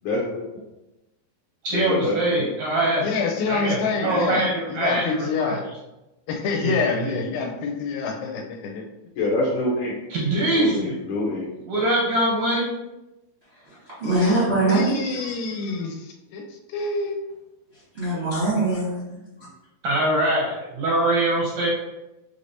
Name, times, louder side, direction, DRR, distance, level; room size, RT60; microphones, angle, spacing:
voice 1, 0.1-0.4 1.7-2.5 9.2-9.9 10.5-11.5, left 2 dB, 70° left, -4 dB, 1.9 m, -25 dB
voice 2, 1.6-3.1 3.5-5.6 6.6-7.2 10.1-11.0 11.7-12.7 19.8-21.7, right 1 dB, 75° right, -3 dB, 1.6 m, -23 dB
voice 3, 3.0-5.6 6.3-8.9 14.0-14.4 14.7-17.2, left 4 dB, 85° left, 1 dB, 2.4 m, -27 dB
voice 4, 13.7-15.3 17.9-19.2, right 2 dB, 45° right, -11 dB, 0.8 m, -23 dB
5.7 x 3.4 x 2.7 m, 0.98 s
omnidirectional pair, 4.2 m